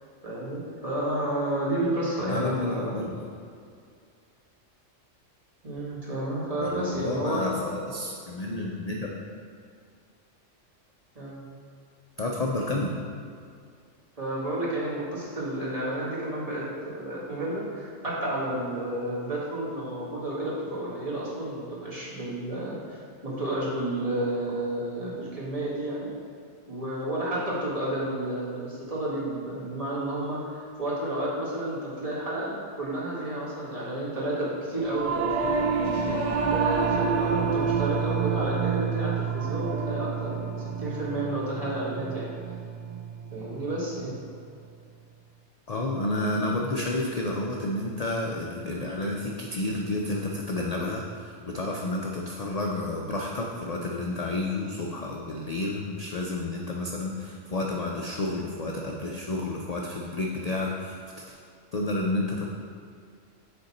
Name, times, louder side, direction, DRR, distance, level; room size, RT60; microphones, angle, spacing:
voice 1, 0.2-3.0 5.6-7.4 11.1-11.4 14.2-26.1 26.7-35.5 36.1-42.3 43.3-44.2, right 1 dB, 30° right, -7 dB, 1.5 m, -31 dB
voice 2, 2.2-3.2 6.6-9.2 12.2-13.0 45.7-61.0 61.3-61.4 61.7-62.5, left 2 dB, 70° left, -1 dB, 0.3 m, -30 dB
Singing / Musical instrument, 34.9-44.4, right 6 dB, 65° right, 0.4 m, -28 dB
6.5 x 4.4 x 4.1 m, 2.3 s
omnidirectional pair, 1.3 m